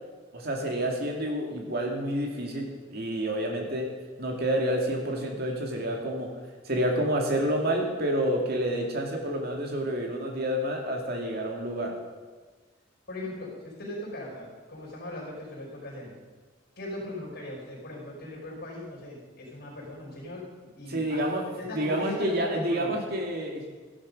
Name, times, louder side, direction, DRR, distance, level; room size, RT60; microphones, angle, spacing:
voice 1, 0.3-3.9 4.2-6.3 6.6-11.9 20.9-21.4 21.7-23.7, right 1 dB, 50° right, 1 dB, 2.4 m, -29 dB
voice 2, 13.1-16.2 16.8-20.4 20.8-21.2 21.5-23.0, left 1 dB, 55° left, -4 dB, 5.2 m, -39 dB
14.0 x 11.5 x 5.4 m, 1.4 s
head